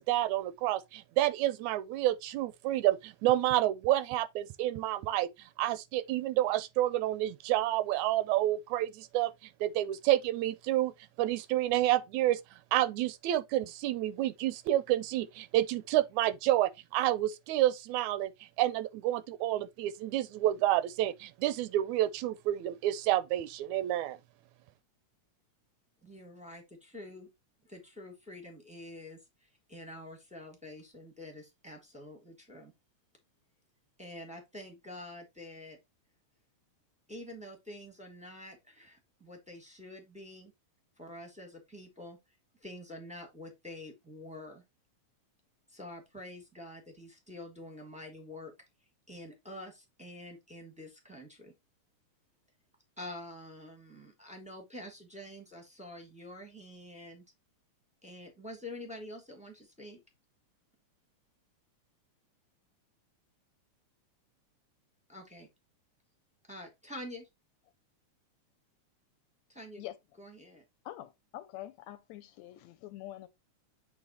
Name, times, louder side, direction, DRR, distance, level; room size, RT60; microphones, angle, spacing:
voice 1, 0.0-5.3 5.6-10.9 11.2-12.4 12.7-18.3 18.6-24.2, right 14 dB, 80° right, 1.8 m, -29 dB
voice 2, 26.0-27.3 27.7-29.2 29.7-32.7 34.0-35.8 37.1-40.5 41.0-42.2 42.6-44.6 45.7-48.5 49.1-51.5 53.0-57.2 58.0-60.0 65.1-65.5 66.5-67.3 69.5-69.8 70.2-70.6, left 1 dB, 5° right, 0.5 m, -47 dB
voice 3, 70.9-73.3, left 14 dB, 75° left, 1.8 m, -45 dB
7.8 x 3.0 x 4.1 m
omnidirectional pair, 3.3 m